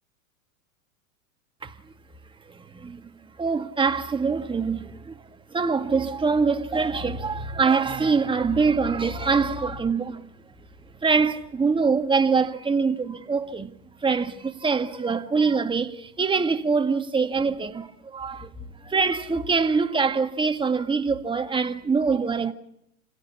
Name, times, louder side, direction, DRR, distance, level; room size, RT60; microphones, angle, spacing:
voice 1, 2.5-3.1 3.4-5.2 5.5-10.3 11.0-13.7 14.0-18.5 18.8-22.5, right 5 dB, 10° right, 1.9 m, -24 dB
29.0 x 17.0 x 8.5 m
hypercardioid pair, 110°, 41 cm